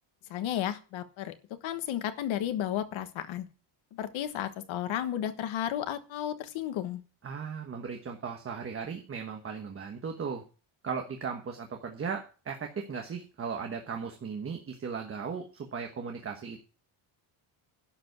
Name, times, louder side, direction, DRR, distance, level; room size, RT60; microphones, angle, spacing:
voice 1, 0.3-1.3 1.6-3.5 3.9-7.0, left 11 dB, 65° left, 10 dB, 1.4 m, -33 dB
voice 2, 7.2-10.4 10.8-16.6, right 6 dB, 25° right, 3 dB, 1.2 m, -37 dB
11.5 x 5.2 x 7.9 m, 0.36 s
cardioid pair, 170°, 50 cm